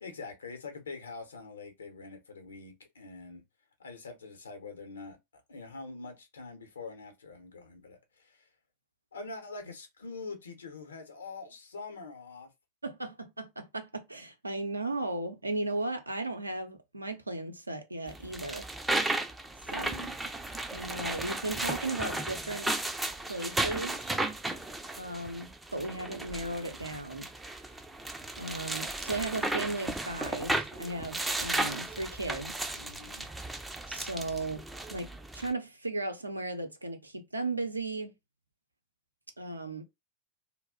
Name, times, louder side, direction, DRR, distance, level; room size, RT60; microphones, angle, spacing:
voice 1, 0.0-3.4 3.8-5.2 5.5-8.5 9.1-12.5 19.6-20.1 32.7-33.3, left 3 dB, 70° left, 0.7 m, -44 dB
voice 2, 12.8-18.7 19.7-19.9 20.7-22.7 23.3-24.0 25.0-27.3 28.4-32.5 33.9-34.6 34.9-35.1 35.3-38.1 39.4-39.8, right 2 dB, 85° right, 0.5 m, -36 dB
sound 1, 18.1-35.5, right 2 dB, 5° right, 0.4 m, -35 dB
2.3 x 2.0 x 3.5 m
figure-of-eight pair, 90°, 0 cm